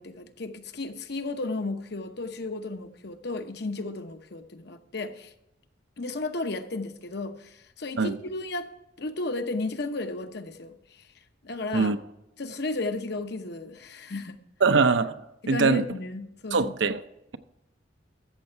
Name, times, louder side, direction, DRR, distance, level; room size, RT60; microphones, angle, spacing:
voice 1, 0.0-5.3 6.0-8.7 9.0-11.1 11.4-11.9 12.4-14.4 15.4-16.7, left 2 dB, 60° left, 0.9 m, -34 dB
voice 2, 14.6-15.2 15.5-15.9 16.5-17.0, right 4 dB, 75° right, 0.7 m, -22 dB
13.5 x 7.7 x 4.5 m
head